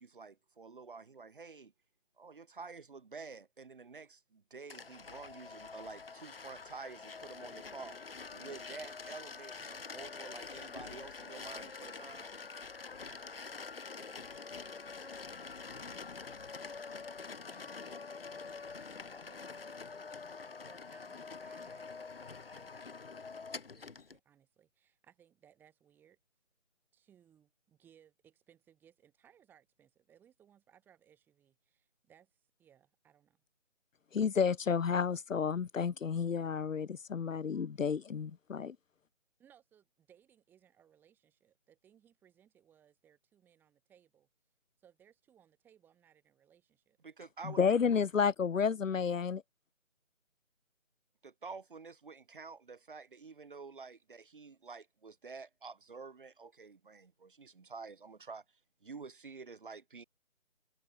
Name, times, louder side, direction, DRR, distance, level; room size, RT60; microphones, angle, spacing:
voice 1, 0.0-1.7 2.2-8.0 8.3-12.3 47.0-47.6 51.2-58.4 58.8-60.0, right 4 dB, 40° right, 2.3 m, -49 dB
sound 1, 4.7-24.2, left 4 dB, 45° left, 1.7 m, -46 dB
voice 2, 13.0-13.6 14.0-16.9 17.5-19.9 20.5-21.9 22.2-26.2 26.9-33.4 39.4-44.3 44.8-47.0, right 9 dB, 5° right, 4.8 m, -66 dB
voice 3, 34.1-38.8 47.4-49.4, left 6 dB, 75° left, 0.7 m, -31 dB
figure-of-eight pair, 165°, 39 cm